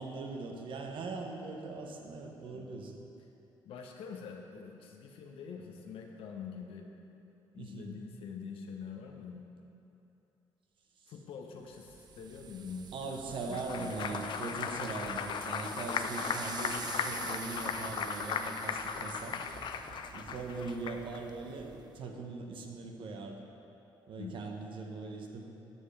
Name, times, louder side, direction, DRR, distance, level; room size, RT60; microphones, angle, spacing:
voice 1, 0.0-2.9 7.6-7.9 12.9-19.4 20.1-23.4 24.1-25.5, right 3 dB, 60° right, 2 dB, 1.0 m, -40 dB
voice 2, 3.6-6.8 7.5-9.4 11.1-13.2 13.5-14.0 19.3-19.5 24.2-24.5, left 6 dB, 75° left, 2 dB, 0.9 m, -45 dB
sound 1, 11.7-22.0, right 7 dB, 45° right, 0.5 m, -47 dB
Applause, 13.4-21.2, left 6 dB, 55° left, 0.4 m, -37 dB
13.0 x 5.5 x 3.4 m, 2.9 s
supercardioid pair, 70°, 10 cm